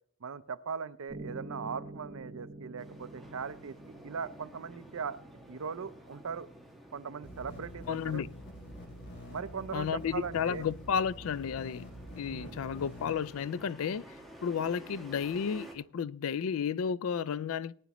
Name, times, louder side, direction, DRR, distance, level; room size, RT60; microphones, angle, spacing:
voice 1, 0.2-3.8 4.0-5.2 5.5-6.5 6.9-8.2 9.3-10.6 12.3-12.6, right 6 dB, 75° right, 0.6 m, -39 dB
Piano, 1.1-9.2, right 2 dB, 25° right, 2.1 m, -49 dB
sound 1, 2.8-15.7, right 1 dB, ahead, 1.6 m, -52 dB
sound 2, 7.2-13.1, equal, 55° left, 2.9 m, -47 dB
voice 2, 7.9-8.3 9.7-11.9 12.2-14.0 14.4-17.7, left 7 dB, 75° left, 0.4 m, -32 dB
18.5 x 9.4 x 3.0 m
head